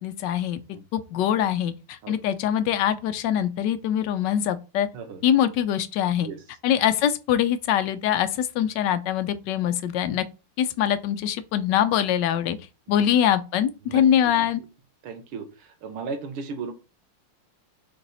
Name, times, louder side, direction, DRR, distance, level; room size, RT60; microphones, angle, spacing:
voice 1, 0.0-0.6 0.9-4.9 5.2-6.3 6.6-10.2 10.6-12.6 12.9-14.6, left 10 dB, 70° left, 1.1 m, -23 dB
voice 2, 13.9-14.5 15.0-16.7, right 5 dB, 85° right, 2.0 m, -36 dB
7.1 x 3.5 x 4.0 m
omnidirectional pair, 2.4 m